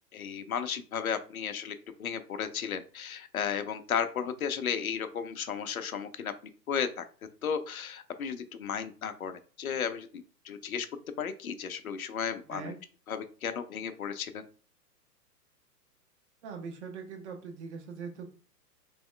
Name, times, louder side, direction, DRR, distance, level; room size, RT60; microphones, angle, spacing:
voice 1, 0.1-6.3 6.7-7.0 7.4-9.3 9.6-10.9 11.2-12.7 13.1-14.4, left 7 dB, 60° left, 9 dB, 0.6 m, -34 dB
voice 2, 16.4-18.3, right 5 dB, 45° right, 3 dB, 1.1 m, -41 dB
3.4 x 3.0 x 3.2 m, 0.39 s
figure-of-eight pair, 110°, 48 cm